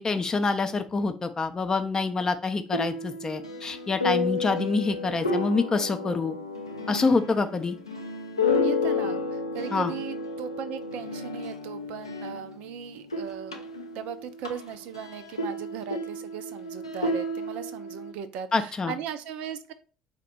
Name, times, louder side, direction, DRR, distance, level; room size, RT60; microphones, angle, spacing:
voice 1, 0.0-6.4 6.9-7.8 9.7-9.9 18.5-18.9, left 4 dB, 25° left, 8 dB, 0.4 m, -26 dB
sound 1, 2.7-12.7 13.0-18.1, left 3 dB, 85° left, 0.4 m, -31 dB
voice 2, 8.6-13.6 13.9-19.7, right 8 dB, 60° right, 11 dB, 0.4 m, -38 dB
4.1 x 2.1 x 4.3 m, 0.36 s
figure-of-eight pair, 55°, 3 cm